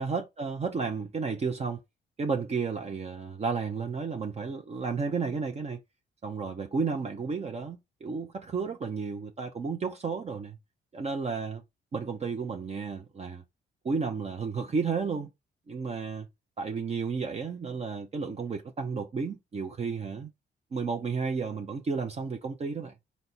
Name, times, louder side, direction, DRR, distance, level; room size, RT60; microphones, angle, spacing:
voice 1, 0.0-1.8 2.2-5.8 6.2-10.6 10.9-11.6 11.9-13.4 13.8-15.3 15.7-16.3 16.6-20.3 20.7-22.9, right 5 dB, 30° right, 0.6 m, -32 dB
4.1 x 2.1 x 4.1 m
cardioid pair, 90°, 20 cm